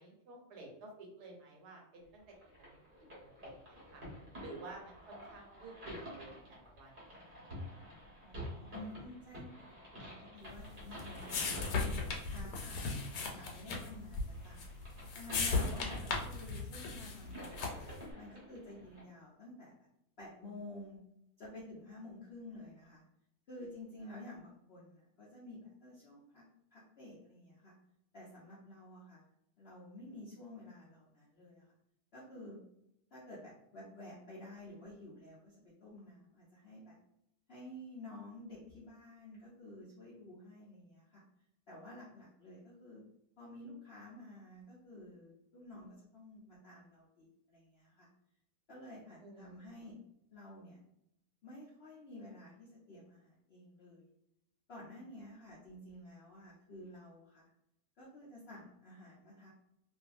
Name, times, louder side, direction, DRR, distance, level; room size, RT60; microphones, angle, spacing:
voice 1, 0.0-4.0 4.4-7.4 15.4-15.6 49.2-49.6, right 2 dB, 75° right, 0 dB, 1.3 m, -52 dB
sound 1, 2.3-19.0, equal, 35° right, 1.0 m, -49 dB
voice 2, 8.2-11.5 11.8-14.7 15.1-17.8 18.1-19.7 20.2-21.0 21.4-23.0 23.5-26.4 26.7-27.7 28.1-29.2 29.6-31.7 32.1-32.6 33.1-37.0 37.5-41.2 41.7-43.0 43.4-48.1 48.7-50.0 50.3-50.8 51.4-54.1 54.7-57.5 58.0-59.5, left 1 dB, 65° left, -7 dB, 0.6 m, -51 dB
sound 2, 10.5-18.0, left 4 dB, 80° left, 1.2 m, -37 dB
2.6 x 2.5 x 2.4 m, 0.79 s
omnidirectional pair, 1.8 m